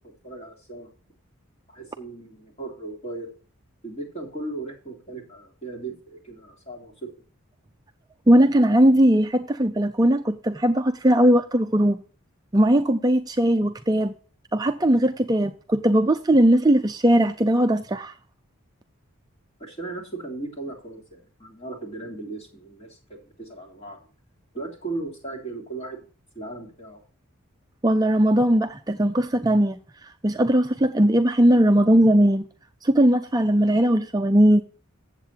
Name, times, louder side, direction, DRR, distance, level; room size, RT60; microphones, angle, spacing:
voice 1, 0.2-0.9 1.7-3.3 3.8-7.1 19.6-24.0 24.5-26.0 26.3-27.0, right 2 dB, 30° left, 3.2 m, -37 dB
voice 2, 8.3-12.0 12.5-14.1 14.5-18.1 27.8-32.5 32.8-34.6, right 1 dB, 20° right, 0.4 m, -19 dB
14.5 x 8.3 x 2.8 m
head